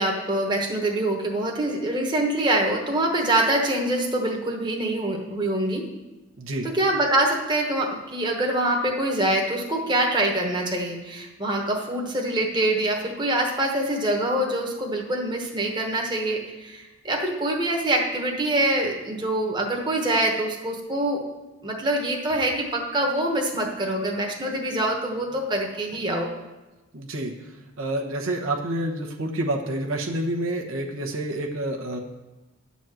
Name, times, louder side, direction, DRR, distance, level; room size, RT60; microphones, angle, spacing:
voice 1, 0.0-5.8 6.6-21.2 21.6-26.3, right 1 dB, 20° right, 0 dB, 1.1 m, -25 dB
voice 2, 26.9-27.3 27.8-32.0, right 1 dB, 70° right, 1 dB, 1.1 m, -28 dB
10.5 x 4.2 x 7.6 m, 1.1 s
head